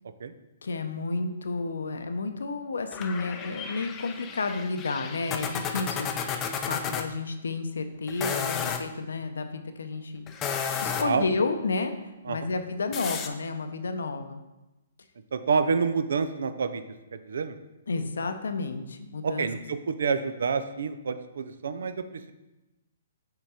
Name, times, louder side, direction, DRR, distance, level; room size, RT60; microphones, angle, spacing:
voice 1, 0.6-6.2 6.6-10.3 10.8-14.4 17.9-19.5, left 3 dB, 85° left, 7 dB, 0.6 m, -31 dB
sound 1, 2.9-7.1 8.1-8.8 10.3-11.2 12.9-13.3, left 7 dB, 20° left, 0.4 m, -32 dB
voice 2, 15.3-16.8 17.1-17.6 19.2-22.3, right 5 dB, 75° right, 10 dB, 0.5 m, -28 dB
5.8 x 3.8 x 4.3 m, 1.0 s
hypercardioid pair, 145°, 0 cm